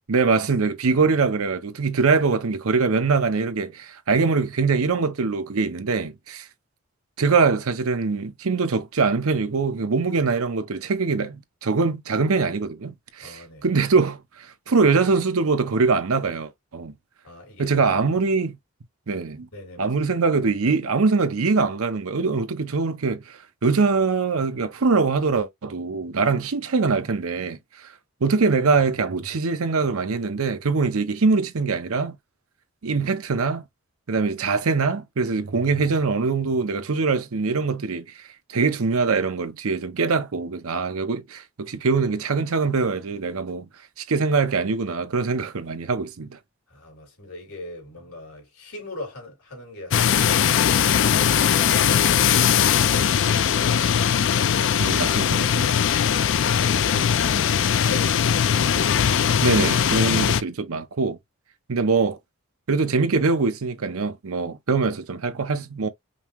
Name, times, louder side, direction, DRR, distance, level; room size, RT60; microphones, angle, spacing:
voice 1, 0.1-6.5 7.2-16.9 17.6-18.6 19.1-19.5 19.8-27.6 28.2-32.2 32.8-33.6 34.1-38.1 38.5-43.7 44.1-46.4 54.8-55.7 57.0-57.1 59.4-61.2 61.7-62.2 62.7-65.9, right 4 dB, 80° right, 0.7 m, -23 dB
voice 2, 13.2-13.7 17.2-18.0 19.5-20.1 46.7-54.1, left 2 dB, 80° left, 2.8 m, -40 dB
sound 1, 49.9-60.4, left 8 dB, 55° left, 0.3 m, -20 dB
5.4 x 2.0 x 3.0 m
head